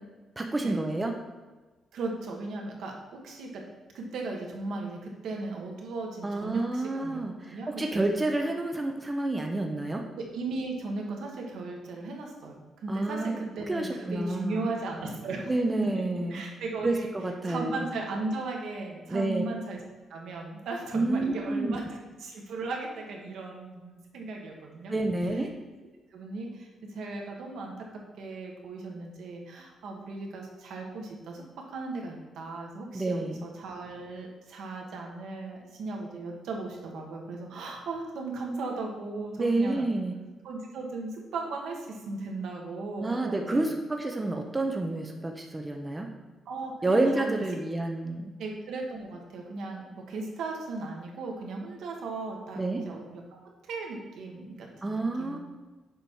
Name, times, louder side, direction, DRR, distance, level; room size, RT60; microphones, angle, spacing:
voice 1, 0.4-1.1 6.2-10.0 12.9-13.4 13.7-14.7 15.5-16.4 16.8-17.8 19.1-19.4 20.9-21.8 24.9-25.5 32.9-33.4 39.4-40.1 43.0-46.1 46.8-48.3 52.6-52.8 54.8-55.4, right 2 dB, 15° right, 2 dB, 0.5 m, -29 dB
voice 2, 1.9-3.6 3.9-7.2 7.5-8.0 10.2-15.5 15.8-16.0 16.3-17.1 17.4-19.8 20.1-24.9 26.1-27.9 28.2-31.4 31.7-39.9 40.4-43.7 46.4-47.3 48.4-55.4, right 3 dB, 75° right, 1 dB, 1.3 m, -37 dB
6.9 x 5.1 x 4.6 m, 1.2 s
cardioid pair, 160°, 0 cm